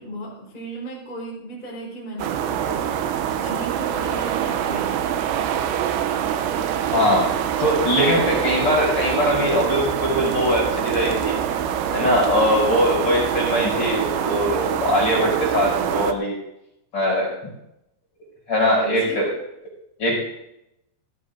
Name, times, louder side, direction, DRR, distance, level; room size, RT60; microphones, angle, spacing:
voice 1, 0.0-3.0 3.3-5.3 13.4-13.7 18.7-19.2, right 1 dB, 10° left, -6 dB, 4.6 m, -35 dB
sound 1, 2.2-16.1, right 9 dB, 90° right, 2.6 m, -25 dB
voice 2, 6.9-7.3 7.6-11.3 11.9-16.4 16.9-17.3 18.5-19.3 20.0-20.3, left 1 dB, 25° left, -4 dB, 6.4 m, -21 dB
18.5 x 15.5 x 2.7 m, 0.84 s
omnidirectional pair, 6.0 m